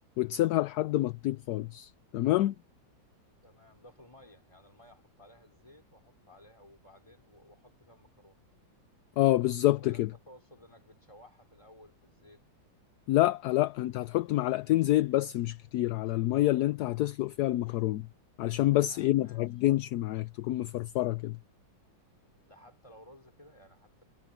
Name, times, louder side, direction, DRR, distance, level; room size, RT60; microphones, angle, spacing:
voice 1, 0.2-2.5 9.2-10.1 13.1-18.1 18.4-21.4, left 15 dB, 70° left, 0.9 m, -27 dB
voice 2, 3.4-8.4 9.8-12.4 18.7-19.4 22.4-24.0, left 1 dB, 15° left, 3.4 m, -57 dB
omnidirectional pair, 2.1 m